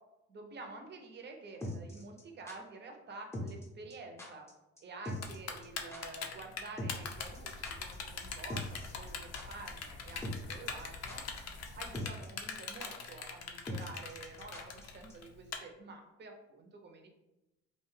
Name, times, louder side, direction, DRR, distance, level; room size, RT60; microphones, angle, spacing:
voice 1, 0.3-4.5 4.8-11.2 11.8-17.1, right 3 dB, 35° right, 3 dB, 0.6 m, -49 dB
sound 1, 1.6-2.6 3.3-3.7 3.9-4.0 4.2-4.5 4.8-4.9 5.1-5.4 5.6-5.7 5.9-6.0 6.8-8.0 8.2-8.3 8.5-9.1 9.4-9.5 10.2-10.5 10.8-11.4 11.7-11.8 11.9-12.3 12.5-12.6 12.8-12.9 13.7-14.8 15.1-15.2, left 1 dB, 10° left, 0.6 m, -41 dB
Typing, 5.2-15.6, left 6 dB, 55° left, 0.5 m, -41 dB
sound 2, 7.0-12.0, left 2 dB, 85° left, 0.8 m, -51 dB
2.7 x 2.2 x 3.2 m, 0.95 s
cardioid pair, 90°, 30 cm